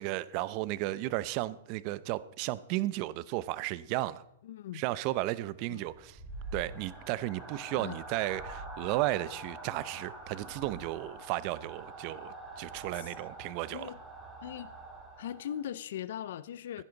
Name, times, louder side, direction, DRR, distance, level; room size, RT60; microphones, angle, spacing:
voice 1, 0.0-4.2 4.7-6.2 6.5-13.9, right 17 dB, 40° right, 17 dB, 0.6 m, -34 dB
voice 2, 4.4-4.8 5.7-5.9 7.8-8.0 12.9-13.1 13.7-14.0 14.4-14.7 15.2-16.8, left 10 dB, 65° left, 16 dB, 0.5 m, -40 dB
sound 1, 5.7-15.7, right 2 dB, 10° right, 3.7 m, -45 dB
15.5 x 10.5 x 4.0 m, 0.78 s
hypercardioid pair, 145°, 0 cm